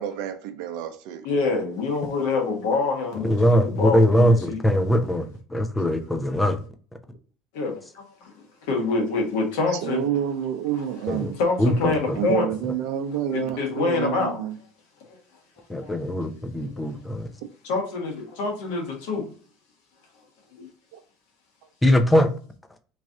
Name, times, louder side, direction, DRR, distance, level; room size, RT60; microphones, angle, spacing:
voice 1, 0.0-1.3 9.8-11.4 12.1-14.6 17.4-17.5 20.9-21.0, right 10 dB, 75° right, 0.6 m, -28 dB
voice 2, 1.2-3.4 3.6-4.6 7.5-10.0 11.4-12.5 13.3-14.4 15.8-16.0 17.6-19.3 20.6-20.7, left 3 dB, 85° left, 1.3 m, -26 dB
voice 3, 3.2-6.6 11.1-11.3 11.6-12.2 15.7-17.3 21.8-22.3, equal, 10° left, 0.6 m, -21 dB
3.2 x 2.6 x 3.6 m
supercardioid pair, 105°, 0 cm